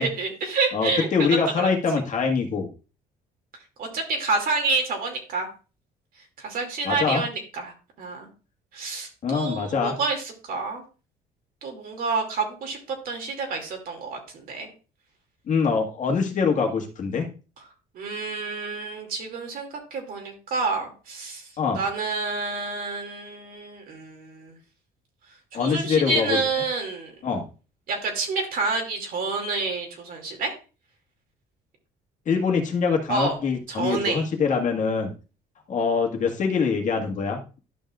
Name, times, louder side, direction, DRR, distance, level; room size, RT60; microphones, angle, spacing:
voice 1, 0.0-1.3 1.6-1.7 3.8-5.5 6.4-8.3 8.7-10.8 11.6-14.7 17.9-21.5 21.7-24.6 25.5-27.1 27.9-30.5 33.1-33.4 33.7-34.3, right 4 dB, 60° right, 3 dB, 2.4 m, -28 dB
voice 2, 0.7-2.7 6.8-7.2 9.2-10.0 15.5-17.3 21.6-21.8 25.5-26.4 27.2-27.4 32.3-35.1 35.7-37.6, left 5 dB, 50° left, 2 dB, 1.8 m, -24 dB
12.0 x 5.5 x 2.4 m, 0.34 s
cardioid pair, 110°, 17 cm